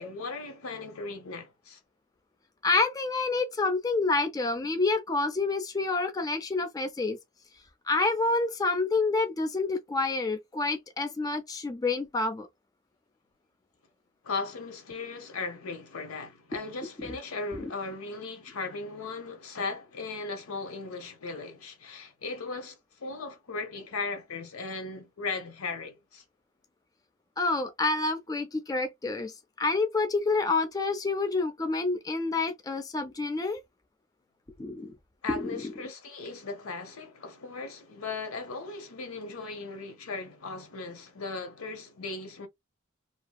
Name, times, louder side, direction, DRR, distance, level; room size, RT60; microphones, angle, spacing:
voice 1, 0.0-1.8 14.2-26.2 35.2-42.5, left 3 dB, 80° left, 0.8 m, -37 dB
voice 2, 2.6-7.2 7.9-12.5 17.0-17.2 17.6-17.7 27.4-33.6 34.6-34.9 35.3-35.6, left 3 dB, 15° left, 0.4 m, -28 dB
2.7 x 2.7 x 2.2 m
head